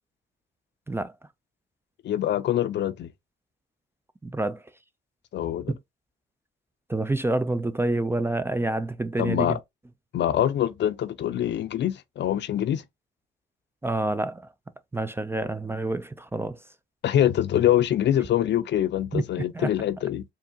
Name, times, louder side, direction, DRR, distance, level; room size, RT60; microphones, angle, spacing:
voice 1, 2.0-3.1 5.3-5.7 9.2-9.6 10.1-12.8 17.0-20.2, left 11 dB, 60° left, 0.6 m, -24 dB
voice 2, 4.2-4.6 5.7-5.8 6.9-9.6 13.8-14.5 14.9-16.6 19.1-19.2 19.5-19.7, right 2 dB, 10° right, 0.4 m, -27 dB
4.6 x 2.8 x 2.8 m
cardioid pair, 90°, 20 cm